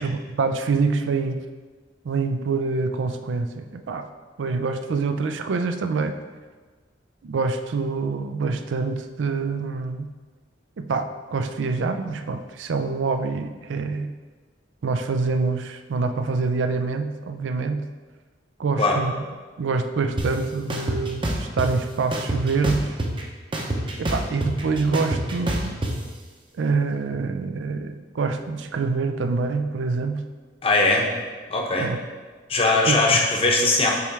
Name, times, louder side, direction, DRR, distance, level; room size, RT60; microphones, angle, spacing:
voice 1, 0.0-1.4 2.0-4.1 4.4-6.2 7.2-10.1 10.8-14.1 14.8-17.9 18.6-19.2 19.6-22.9 24.0-25.8 26.6-30.2 31.8-32.0 32.9-33.2, right 4 dB, 85° right, 8 dB, 0.4 m, -26 dB
sound 1, 20.2-20.3 20.7-21.7 22.1-23.2 23.5-25.9, right 1 dB, 25° right, 0.7 m, -25 dB
voice 2, 30.6-31.1 31.5-31.9 32.5-33.9, left 2 dB, 30° left, 0 dB, 0.8 m, -20 dB
6.8 x 3.2 x 4.7 m, 1.4 s
head